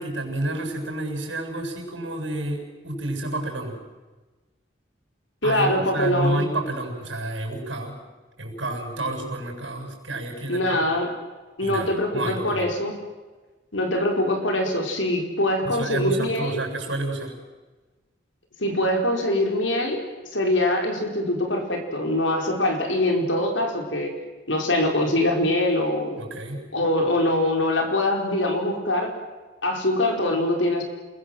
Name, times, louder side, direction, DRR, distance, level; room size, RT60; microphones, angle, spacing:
voice 1, 0.0-3.8 5.4-8.0 8.4-10.9 11.6-12.7 15.6-17.3 26.2-26.6, right 2 dB, 75° right, 2 dB, 7.4 m, -30 dB
voice 2, 5.4-6.4 10.5-11.1 11.6-12.9 13.7-16.6 18.6-20.0 20.3-24.1 24.5-26.2 26.7-29.1 29.6-30.8, left 1 dB, 80° left, 3 dB, 4.7 m, -23 dB
28.5 x 21.0 x 7.8 m, 1.2 s
head